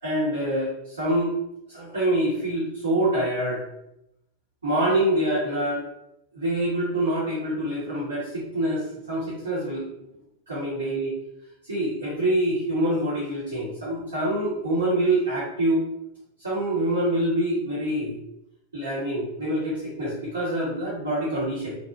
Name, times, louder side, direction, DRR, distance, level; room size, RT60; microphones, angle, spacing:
voice 1, 0.0-1.3 1.7-3.6 4.6-5.8 6.3-9.9 10.5-11.1 11.6-15.8 16.4-18.1 18.7-21.8, right 1 dB, 75° right, -9 dB, 1.0 m, -25 dB
2.6 x 2.2 x 2.4 m, 0.83 s
figure-of-eight pair, 90°, 0 cm